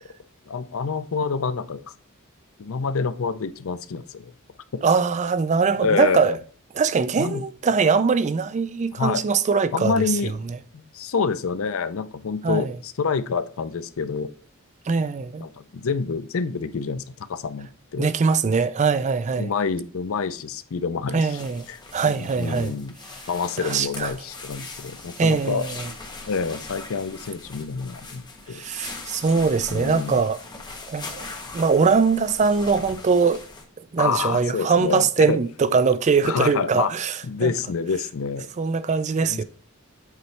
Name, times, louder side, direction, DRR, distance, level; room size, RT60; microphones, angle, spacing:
voice 1, 0.5-1.8 2.6-4.3 4.7-4.8 5.8-6.4 7.2-7.4 8.9-9.2 9.7-10.4 10.7-14.3 15.4-17.0 17.3-18.1 19.4-21.4 21.7-21.8 22.1-23.0 23.3-25.7 26.3-28.6 29.7-30.2 34.0-35.4 36.2-36.9 37.2-38.5 39.2-39.4, left 5 dB, 65° left, 0.5 m, -27 dB
voice 2, 4.8-6.4 6.8-10.1 10.5-10.6 12.4-12.8 14.9-15.4 18.0-19.5 21.1-21.7 21.9-22.7 23.6-24.1 25.2-25.9 28.5-30.4 30.9-31.3 31.5-33.4 33.9-37.5 38.6-39.4, right 5 dB, 35° right, 0.4 m, -22 dB
sound 1, 21.1-33.6, left 3 dB, 20° left, 1.1 m, -40 dB
8.1 x 3.2 x 4.5 m
head